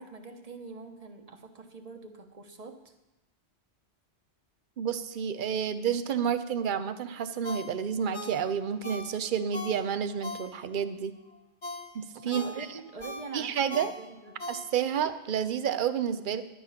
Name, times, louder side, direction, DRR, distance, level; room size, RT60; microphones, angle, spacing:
voice 1, 0.0-2.9 12.2-14.4, right 3 dB, 35° right, 5 dB, 1.2 m, -44 dB
voice 2, 4.8-11.1 11.9-12.7 13.3-13.9 14.5-16.4, right 8 dB, 55° right, 12 dB, 0.8 m, -30 dB
Ringtone, 7.4-10.9 11.3-15.1 15.4-15.5, left 2 dB, 40° left, 2.0 m, -42 dB
11.0 x 10.5 x 5.8 m, 0.96 s
omnidirectional pair, 1.1 m